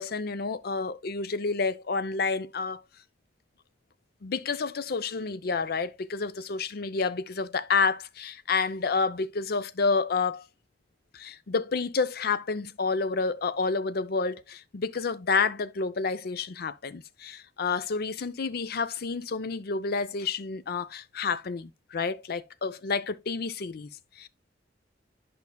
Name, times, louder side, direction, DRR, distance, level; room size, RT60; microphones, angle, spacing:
voice 1, 0.0-2.8 4.2-10.4 11.1-23.9 24.2-24.3, left 4 dB, 60° left, 0.6 m, -29 dB
10.5 x 5.5 x 2.2 m
head